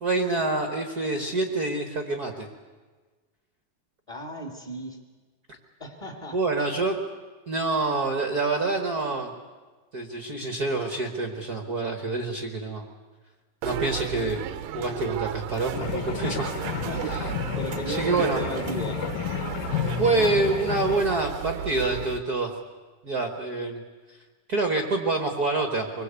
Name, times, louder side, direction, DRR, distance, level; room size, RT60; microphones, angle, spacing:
voice 1, 0.0-2.5 6.3-7.0 7.5-9.3 9.9-12.9 13.6-14.5 14.7-16.5 17.1-17.2 17.9-18.4 20.0-22.5 23.0-23.8 24.1-24.2 24.5-26.0, right 3 dB, 45° right, 5 dB, 1.2 m, -26 dB
voice 2, 4.1-5.0 5.8-6.4 16.8-17.2 17.5-19.0, equal, 15° left, 2 dB, 1.5 m, -35 dB
sound 1, 13.6-22.2, right 11 dB, 85° right, 2.6 m, -34 dB
sound 2, 15.7-21.0, left 10 dB, 70° left, 2.2 m, -31 dB
25.0 x 20.5 x 8.2 m, 1.4 s
omnidirectional pair, 3.8 m